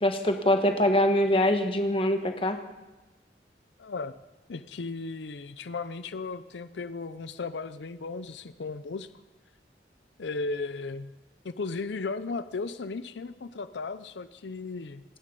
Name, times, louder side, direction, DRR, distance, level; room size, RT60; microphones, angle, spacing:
voice 1, 0.0-2.6, left 1 dB, 30° left, 6 dB, 1.4 m, -23 dB
voice 2, 3.8-4.1 4.5-9.1 10.2-11.1 11.4-15.0, left 3 dB, 85° left, 13 dB, 0.6 m, -35 dB
27.0 x 9.8 x 5.4 m, 1.2 s
head